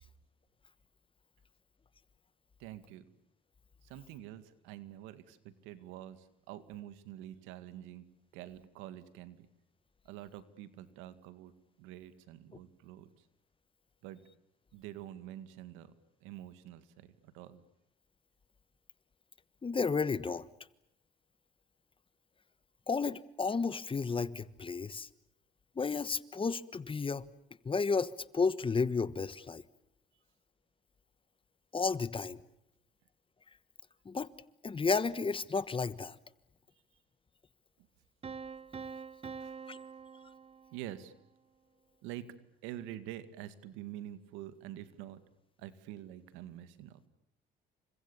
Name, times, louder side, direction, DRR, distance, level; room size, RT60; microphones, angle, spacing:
voice 1, 2.6-3.1 3.8-8.1 8.3-9.5 10.0-11.5 11.8-13.3 14.0-14.2 14.7-15.9 16.2-17.6 37.8-37.9 39.4-39.6 40.7-41.1 42.0-42.3 42.6-45.2 45.6-47.0, right 12 dB, 90° right, 2.1 m, -47 dB
voice 2, 19.6-20.5 22.9-25.1 25.8-27.2 27.6-29.6 31.7-32.4 34.0-34.3 34.6-36.2 39.7-39.8, left 4 dB, 25° left, 1.3 m, -32 dB
Piano, 38.2-41.1, right 5 dB, 30° right, 1.1 m, -45 dB
29.5 x 25.5 x 7.2 m
supercardioid pair, 85°, 20 cm